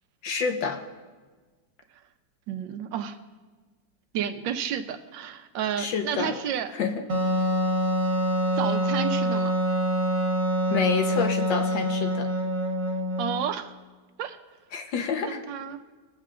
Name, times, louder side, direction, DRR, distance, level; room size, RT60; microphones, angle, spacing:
voice 1, 0.2-0.8 5.8-6.4 6.8-7.0 10.7-12.3 14.7-15.4, left 5 dB, 80° left, 4 dB, 1.7 m, -28 dB
voice 2, 2.5-3.2 4.1-6.7 8.5-9.5 13.2-13.7 14.2-14.4 15.2-15.8, right 8 dB, 85° right, 9 dB, 1.4 m, -31 dB
Wind instrument woodwind instrument, 7.1-13.5, equal, 40° right, 1.4 m, -25 dB
20.5 x 7.5 x 2.5 m, 1.3 s
omnidirectional pair, 2.0 m